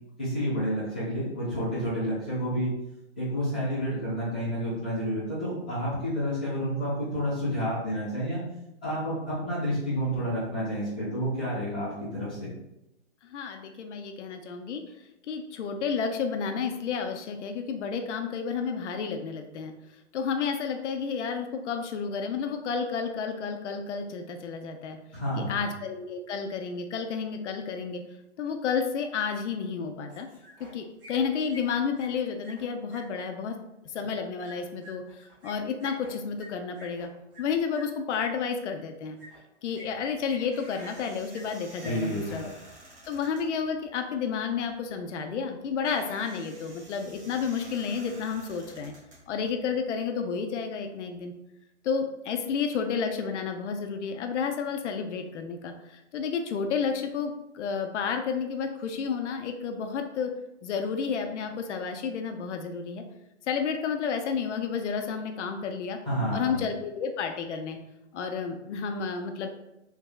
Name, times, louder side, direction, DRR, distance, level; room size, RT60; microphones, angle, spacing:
voice 1, 0.2-2.7 3.2-8.4 8.8-12.5 25.1-25.6 41.8-42.3 66.0-66.6, equal, 10° left, -16 dB, 0.4 m, -30 dB
voice 2, 13.2-14.8 15.3-19.7 20.1-25.0 25.5-28.0 28.4-30.3 30.7-33.6 33.9-37.1 37.4-39.2 39.6-42.5 43.1-48.9 49.3-51.3 51.8-60.3 60.6-63.0 63.5-66.0 66.3-67.8 68.1-69.5, left 6 dB, 75° left, 5 dB, 0.5 m, -31 dB
sound 1, 30.1-30.7 31.0-33.0 34.4-37.8 39.2-39.4 39.7-40.5 40.8-41.5 41.8-41.9 42.2-42.4, equal, 50° right, 1.1 m, -48 dB
sound 2, 40.0-49.9, right 1 dB, 25° right, 0.8 m, -51 dB
3.4 x 2.0 x 2.3 m, 0.91 s
hypercardioid pair, 165°, 36 cm